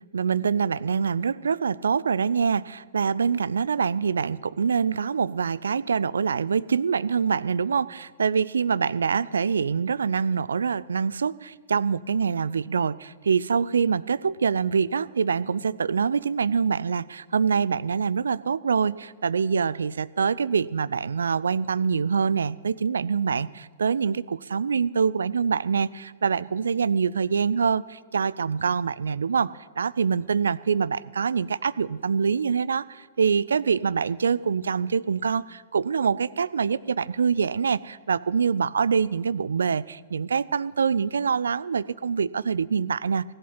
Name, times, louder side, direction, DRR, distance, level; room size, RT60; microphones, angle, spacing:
voice 1, 0.1-43.2, right 6 dB, 70° right, 20 dB, 0.3 m, -25 dB
16.5 x 11.0 x 5.6 m, 1.5 s
figure-of-eight pair, 105°, 0 cm